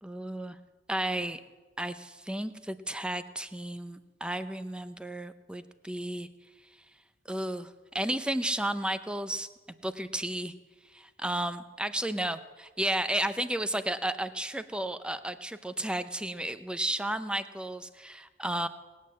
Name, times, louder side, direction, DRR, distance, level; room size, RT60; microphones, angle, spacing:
voice 1, 0.0-0.6 0.9-1.4 1.8-6.3 7.3-9.5 9.8-10.5 10.9-18.7, right 1 dB, 5° right, 11 dB, 0.6 m, -33 dB
19.0 x 9.3 x 7.5 m, 1.3 s
head